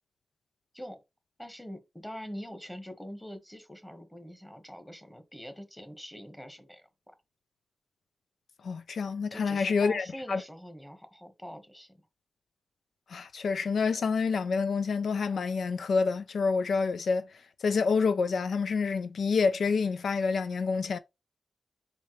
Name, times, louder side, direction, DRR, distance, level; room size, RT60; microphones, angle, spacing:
voice 1, 1.4-7.1 9.3-12.0, equal, 10° left, 1.3 m, -44 dB
voice 2, 8.6-10.4 13.1-21.0, left 5 dB, 80° left, 0.4 m, -28 dB
4.4 x 3.6 x 3.1 m
cardioid pair, 55°, 0 cm